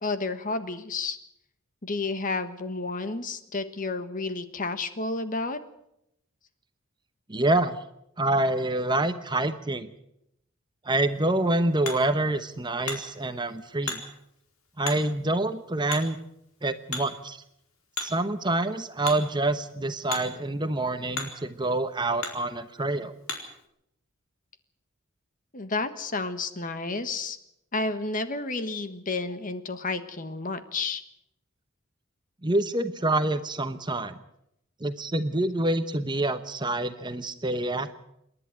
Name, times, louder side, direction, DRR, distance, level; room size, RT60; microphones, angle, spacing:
voice 1, 0.0-1.2 1.8-5.6 25.5-27.4 27.7-31.0, left 3 dB, 40° left, 10 dB, 1.4 m, -31 dB
voice 2, 7.3-7.8 8.2-9.9 10.8-14.0 14.8-16.2 16.6-17.4 18.0-23.1 32.4-34.2 34.8-38.0, right 2 dB, 20° right, 10 dB, 1.0 m, -27 dB
Hammer, 11.0-23.6, left 4 dB, 80° left, 4.3 m, -40 dB
28.0 x 11.0 x 9.1 m, 0.81 s
head